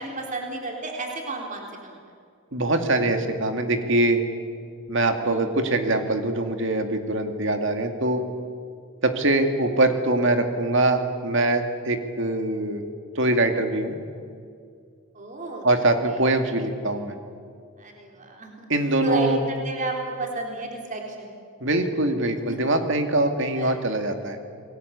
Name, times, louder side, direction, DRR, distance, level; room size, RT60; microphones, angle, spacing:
voice 1, 0.0-2.0 5.2-5.5 13.4-13.6 15.1-15.7 17.8-18.7 19.0-21.4 22.5-22.6 23.6-23.7, right 2 dB, 35° right, 1 dB, 3.7 m, -32 dB
voice 2, 2.5-4.2 4.9-8.2 9.0-12.8 13.1-14.0 15.6-17.2 18.7-19.4 21.6-24.4, right 2 dB, 60° right, 6 dB, 2.5 m, -23 dB
28.5 x 21.0 x 8.3 m, 2.3 s
head